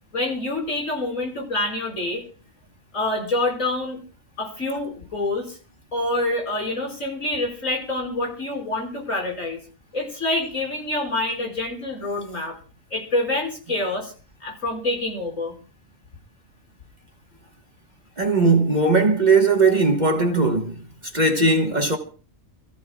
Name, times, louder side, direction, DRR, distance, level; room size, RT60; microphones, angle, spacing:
voice 1, 0.1-2.2 2.9-4.0 4.4-5.6 5.9-9.6 9.9-12.5 12.9-14.1 14.4-15.5, left 2 dB, 70° left, 5.5 m, -26 dB
voice 2, 18.2-20.8 21.1-22.0, right 3 dB, 35° right, 1.4 m, -18 dB
28.0 x 14.5 x 2.3 m
omnidirectional pair, 1.4 m